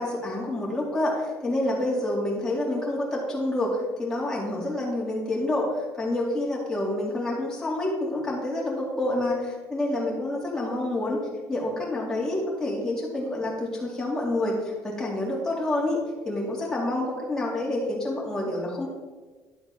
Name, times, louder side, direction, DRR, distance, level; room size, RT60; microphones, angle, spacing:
voice 1, 0.0-11.2 11.5-16.0 16.2-18.9, left 1 dB, 10° left, -4 dB, 2.4 m, -28 dB
11.0 x 7.8 x 3.5 m, 1.3 s
cardioid pair, 160°, 6 cm